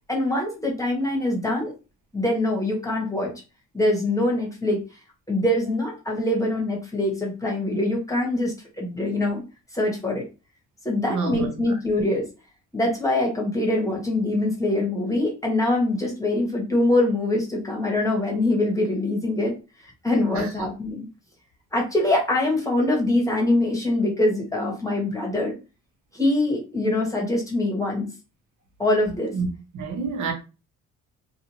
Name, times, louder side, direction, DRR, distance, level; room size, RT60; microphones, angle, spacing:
voice 1, 0.1-1.7 2.1-3.3 3.7-4.8 5.3-9.4 9.7-10.3 10.8-12.3 12.7-19.5 20.0-21.1 21.7-25.5 26.1-28.1 28.8-29.3, left 1 dB, 10° left, 1.1 m, -23 dB
voice 2, 11.1-11.5 20.3-20.5 29.3-29.5 29.7-30.3, right 4 dB, 70° right, 0.9 m, -27 dB
2.6 x 2.4 x 2.9 m
cardioid pair, 90°, 30 cm